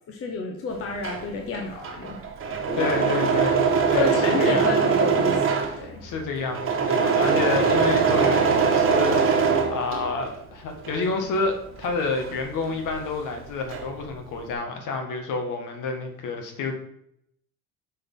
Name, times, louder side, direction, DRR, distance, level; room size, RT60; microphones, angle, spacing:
voice 1, 0.1-3.4 3.9-6.0, left 4 dB, 40° left, 1 dB, 1.2 m, -30 dB
Engine / Mechanisms, 0.8-10.4 10.7-13.1 13.3-14.1, right 6 dB, 35° right, 1.4 m, -23 dB
voice 2, 2.8-4.7 5.8-16.7, left 4 dB, 60° left, 4 dB, 1.7 m, -29 dB
6.7 x 4.3 x 5.5 m, 0.72 s
cardioid pair, 115°, 35 cm